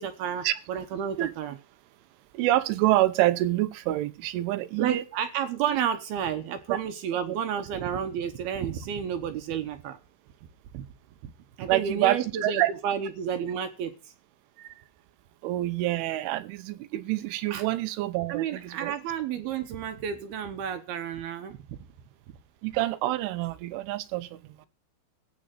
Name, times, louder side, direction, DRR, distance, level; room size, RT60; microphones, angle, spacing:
voice 1, 0.0-1.6 4.8-10.0 10.7-10.9 11.2-11.3 11.6-13.9 17.5-17.6 18.3-21.6, right 8 dB, 70° right, 2.6 m, -31 dB
voice 2, 2.3-5.0 6.7-6.8 11.7-12.7 14.6-14.7 15.4-18.9 22.6-24.7, right 15 dB, 90° right, 3.5 m, -27 dB
15.5 x 5.3 x 9.2 m
omnidirectional pair, 5.4 m